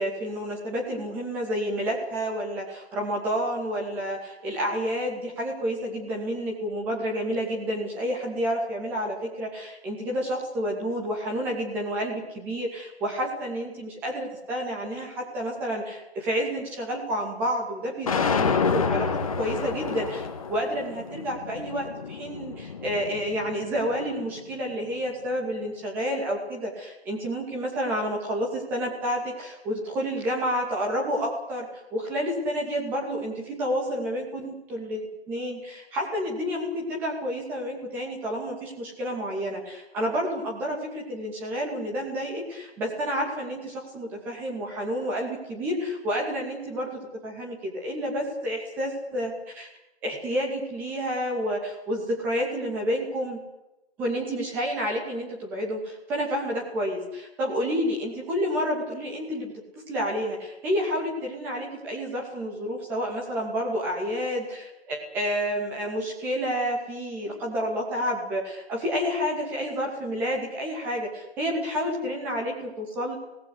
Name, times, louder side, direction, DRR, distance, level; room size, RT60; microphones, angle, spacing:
voice 1, 0.0-19.1 19.4-49.7 50.0-53.4 54.0-59.5 59.9-73.2, equal, 5° right, -1 dB, 2.4 m, -30 dB
sound 1, 18.1-24.2, left 5 dB, 30° left, 2.0 m, -29 dB
25.5 x 19.0 x 8.3 m, 0.97 s
hypercardioid pair, 175°, 33 cm